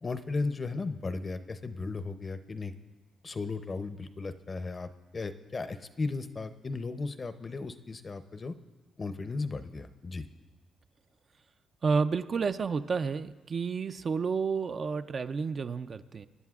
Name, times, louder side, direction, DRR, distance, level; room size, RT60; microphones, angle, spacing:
voice 1, 0.0-2.7 3.2-8.5 9.0-10.3, left 3 dB, 30° left, 11 dB, 0.6 m, -35 dB
voice 2, 11.8-16.3, right 5 dB, 45° right, 10 dB, 0.4 m, -30 dB
24.0 x 10.5 x 2.4 m, 1.2 s
cardioid pair, 90°, 0 cm